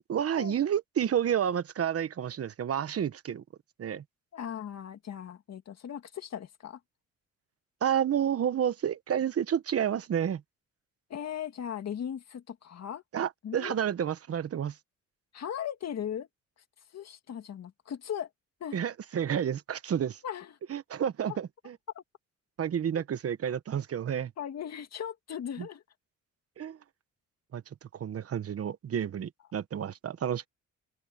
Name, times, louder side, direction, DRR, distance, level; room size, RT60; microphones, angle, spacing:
voice 1, 0.0-3.4 3.8-4.0 7.8-10.4 13.1-14.7 18.7-20.2 20.7-21.8 22.6-24.3 26.6-26.8 27.5-27.6 27.9-30.5, right 9 dB, 50° right, 1.3 m, -30 dB
voice 2, 4.3-6.8 11.1-13.0 13.4-13.8 15.3-16.3 16.9-18.3 18.6-18.8 20.2-20.5 21.3-21.4 22.0-22.1 23.0-23.1 24.4-25.8, left 9 dB, 60° left, 2.2 m, -38 dB
open air
cardioid pair, 90°, 30 cm